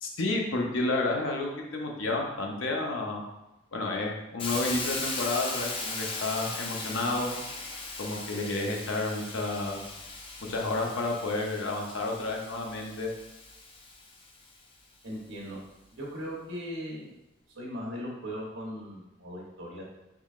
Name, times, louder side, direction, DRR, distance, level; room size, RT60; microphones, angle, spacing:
voice 1, 0.0-3.2 3.7-7.4 8.0-9.8 10.5-13.1, left 2 dB, 80° left, 1 dB, 0.6 m, -31 dB
Hiss, 4.4-14.3, left 3 dB, 25° left, 0.4 m, -38 dB
voice 2, 15.0-15.6 15.9-17.2 17.5-19.8, equal, 80° right, -3 dB, 0.9 m, -38 dB
3.7 x 3.1 x 2.4 m, 0.94 s
head